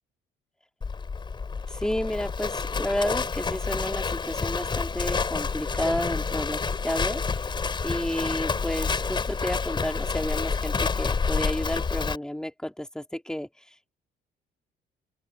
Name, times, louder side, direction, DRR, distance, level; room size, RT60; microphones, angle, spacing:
Livestock farm animals working animals, 0.8-12.2, left 5 dB, 30° left, 4.6 m, -29 dB
voice 1, 1.7-6.6 6.8-7.2 7.8-13.5, left 1 dB, 5° left, 4.2 m, -31 dB
open air
cardioid pair, 110°, 17 cm